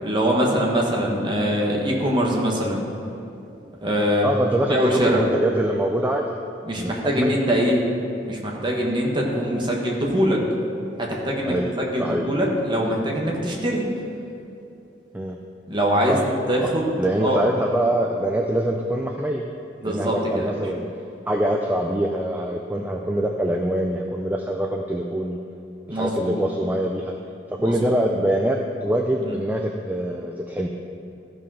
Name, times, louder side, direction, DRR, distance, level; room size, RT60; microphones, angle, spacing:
voice 1, 0.0-2.8 3.8-4.3 4.7-5.2 6.7-7.8 8.2-10.4 11.0-13.8 15.7-16.2 16.5-16.9 17.2-17.4 19.8-20.5 25.9-26.4 27.6-27.7 29.2-29.4, equal, 25° right, -2 dB, 1.4 m, -23 dB
voice 2, 4.2-6.4 6.8-7.4 11.5-11.7 12.0-12.2 15.1-15.4 16.1-16.2 16.6-16.7 17.0-19.5 19.8-20.8 21.3-25.4 25.9-27.1 27.6-30.7, right 1 dB, 10° right, 2 dB, 0.4 m, -24 dB
13.5 x 5.2 x 5.6 m, 2.7 s
head